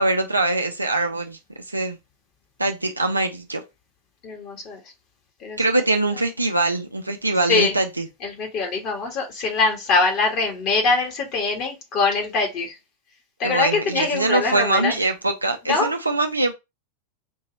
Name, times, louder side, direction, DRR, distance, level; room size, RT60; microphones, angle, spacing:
voice 1, 0.0-1.4 1.7-2.0 2.6-3.6 5.6-8.1 13.4-16.5, right 2 dB, 85° right, 0.6 m, -23 dB
voice 2, 4.2-4.8 5.4-5.6 7.5-7.8 8.2-12.8 13.4-15.0 15.7-15.9, left 4 dB, 40° left, 1.8 m, -23 dB
5.3 x 3.0 x 2.9 m
figure-of-eight pair, 90°, 0 cm